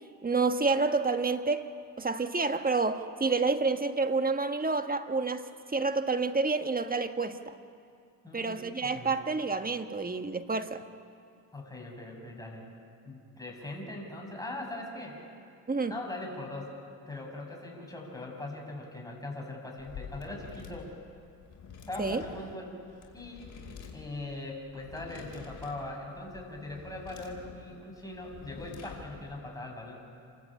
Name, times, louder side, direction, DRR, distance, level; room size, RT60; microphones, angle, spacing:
voice 1, 0.2-1.7 2.0-5.4 5.7-7.5 8.3-10.8 15.7-15.9 22.0-22.2, right 3 dB, 25° right, 8 dB, 1.4 m, -29 dB
voice 2, 8.2-9.2 11.5-12.7 13.0-15.2 15.9-16.7 17.1-20.9 21.9-22.8 23.1-23.5 23.9-30.0, left 2 dB, 10° left, -1 dB, 7.5 m, -41 dB
sound 1, 19.8-29.4, left 6 dB, 50° left, 4.4 m, -48 dB
29.0 x 14.0 x 8.9 m, 2.4 s
supercardioid pair, 65°, 38 cm